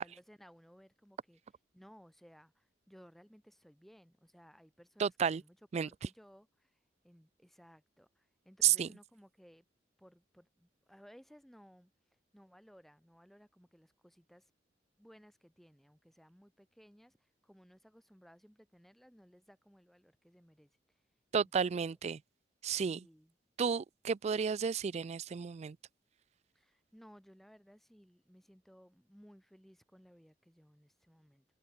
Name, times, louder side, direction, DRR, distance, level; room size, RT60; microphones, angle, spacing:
voice 1, 0.0-1.4 1.7-6.8 7.0-9.7 10.0-11.9 12.3-14.5 15.0-20.7 21.4-22.0 22.7-23.4 26.5-31.5, equal, ahead, 7.7 m, -61 dB
voice 2, 5.0-5.4 5.7-5.9 8.6-8.9 21.3-22.2 22.6-23.0 23.6-25.8, right 7 dB, 40° right, 0.3 m, -32 dB
head